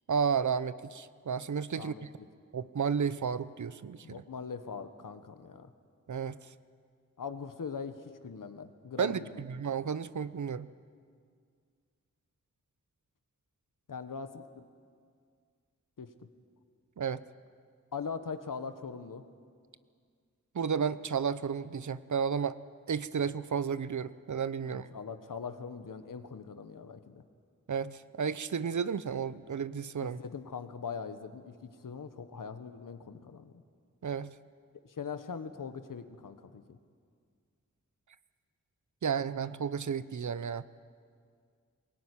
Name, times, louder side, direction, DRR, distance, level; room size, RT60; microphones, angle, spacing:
voice 1, 0.1-2.1 2.5-4.2 6.1-6.4 9.0-10.7 17.0-17.2 20.5-22.6 22.9-24.9 27.7-30.2 34.0-34.3 39.0-40.6, right 6 dB, 65° right, 16 dB, 0.8 m, -32 dB
voice 2, 4.0-5.7 7.2-9.4 13.9-14.6 16.0-16.1 17.9-19.2 24.6-27.2 30.0-33.6 34.9-36.8, left 5 dB, 85° left, 10 dB, 1.3 m, -41 dB
21.5 x 18.0 x 9.9 m, 2.1 s
cardioid pair, 45°, 32 cm